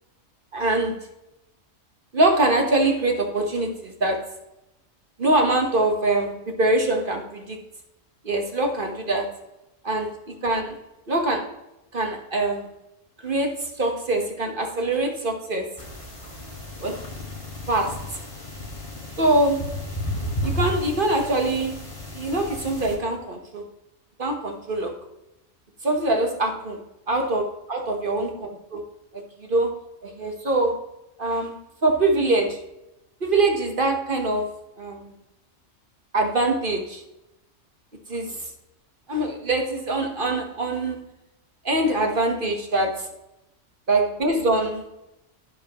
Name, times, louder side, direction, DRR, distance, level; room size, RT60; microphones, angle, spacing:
voice 1, 0.5-1.0 2.1-4.3 5.2-7.6 8.2-9.3 9.8-10.1 10.4-10.8 11.1-11.4 11.9-12.7 13.2-15.7 16.8-16.9 17.7-18.0 19.2-19.7 20.4-21.7 22.1-23.6 24.2-24.9 25.8-28.8 29.1-29.7 30.0-30.8 31.2-31.6 31.8-32.6 33.2-34.5 34.8-35.1 36.1-37.0 38.1-38.5 39.1-41.0 41.6-43.1 43.9-44.8, right 2 dB, 45° right, 3 dB, 1.4 m, -23 dB
sound 1, 15.8-23.0, left 1 dB, 25° left, 1.9 m, -33 dB
11.5 x 9.7 x 3.0 m, 0.91 s
omnidirectional pair, 1.3 m